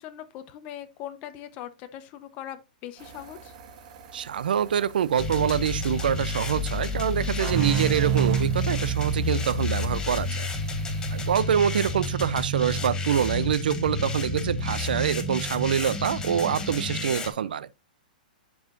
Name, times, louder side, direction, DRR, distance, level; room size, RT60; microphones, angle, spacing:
voice 1, 0.0-3.5, left 11 dB, 35° left, 1.0 m, -40 dB
sound 1, 3.0-11.3, right 6 dB, 55° right, 1.9 m, -50 dB
voice 2, 4.1-10.5 11.1-17.7, right 8 dB, 80° right, 0.6 m, -25 dB
sound 2, 5.2-17.3, left 1 dB, 15° left, 1.4 m, -30 dB
sound 3, 7.4-10.8, right 7 dB, 40° right, 0.9 m, -29 dB
10.5 x 4.7 x 2.6 m
hypercardioid pair, 135°, 5 cm